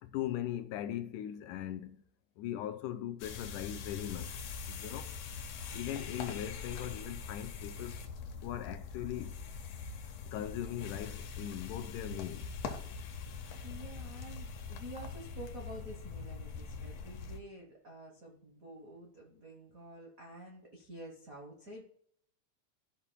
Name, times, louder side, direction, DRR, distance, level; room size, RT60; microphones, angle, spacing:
voice 1, 0.0-2.0 2.4-4.4 4.7-5.1 5.7-8.0 8.4-9.4 10.2-12.5, left 11 dB, 90° left, 2.2 m, -39 dB
sound 1, 3.2-17.4, left 5 dB, 65° left, 1.8 m, -43 dB
voice 2, 5.9-6.2 12.8-12.9 13.6-21.8, right 1 dB, 85° right, 0.7 m, -49 dB
14.0 x 5.8 x 2.3 m
omnidirectional pair, 3.6 m